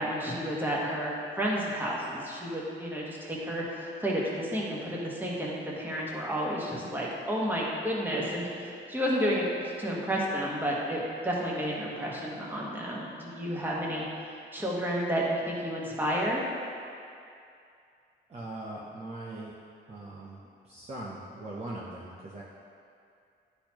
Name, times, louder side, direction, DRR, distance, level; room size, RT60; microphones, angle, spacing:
voice 1, 0.0-14.0 14.5-16.4, equal, 10° right, -4 dB, 1.4 m, -31 dB
voice 2, 18.3-19.5 19.9-22.4, right 2 dB, 30° right, -6 dB, 0.8 m, -41 dB
10.0 x 4.1 x 3.0 m, 2.5 s
cardioid pair, 90°, 20 cm